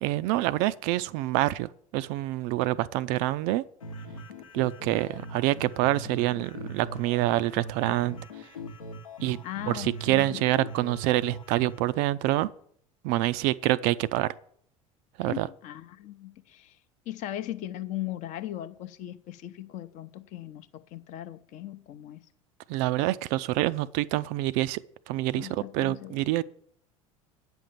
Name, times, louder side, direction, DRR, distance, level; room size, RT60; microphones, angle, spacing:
voice 1, 0.0-3.7 4.5-8.2 9.2-9.4 9.7-12.5 13.0-14.3 15.2-15.5 22.7-26.4, right 16 dB, 45° right, 0.4 m, -26 dB
sound 1, 3.8-11.8, right 1 dB, 75° left, 1.0 m, -41 dB
voice 2, 9.4-10.4 15.2-16.8 17.1-22.2 25.3-26.2, left 13 dB, 45° left, 0.7 m, -38 dB
9.1 x 6.2 x 7.1 m
figure-of-eight pair, 70°, 18 cm